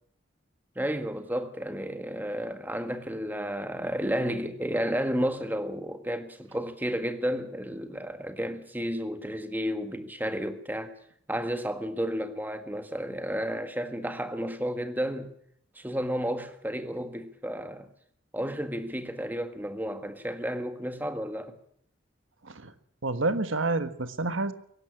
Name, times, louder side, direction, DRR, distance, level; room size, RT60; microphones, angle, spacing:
voice 1, 0.7-10.9 11.3-15.3 15.7-17.9 18.3-21.6, equal, 10° right, 1.7 m, -32 dB
voice 2, 23.0-24.5, right 3 dB, 80° right, 1.5 m, -28 dB
23.0 x 12.0 x 10.0 m
head